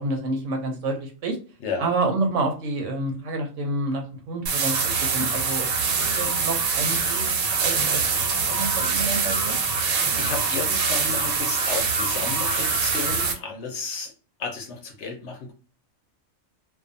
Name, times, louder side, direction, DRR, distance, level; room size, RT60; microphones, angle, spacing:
voice 1, 0.0-1.4 1.8-9.6, right 2 dB, 65° right, 3 dB, 0.9 m, -29 dB
sound 1, 4.5-13.3, right 5 dB, 85° right, 1.1 m, -24 dB
voice 2, 9.7-14.1 14.4-15.5, left 5 dB, 65° left, 3 dB, 0.8 m, -33 dB
2.5 x 2.2 x 2.5 m, 0.36 s
omnidirectional pair, 1.4 m